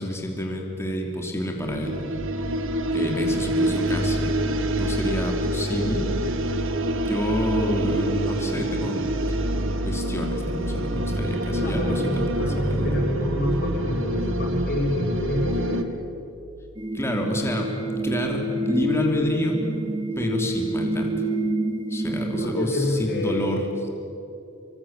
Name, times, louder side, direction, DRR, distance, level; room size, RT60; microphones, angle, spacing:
voice 1, 0.0-2.0 2.9-4.3 4.8-6.1 7.0-9.2 9.8-13.0 16.9-19.6 20.1-21.1 21.9-23.9, left 1 dB, 10° left, 1 dB, 3.1 m, -28 dB
sound 1, 1.6-15.8, right 1 dB, 60° right, 1.7 m, -26 dB
voice 2, 11.5-15.8 22.3-23.4, left 1 dB, 45° left, -8 dB, 6.7 m, -27 dB
sound 2, 16.8-22.5, right 1 dB, 20° right, 1.8 m, -27 dB
26.5 x 24.0 x 8.9 m, 2.9 s
head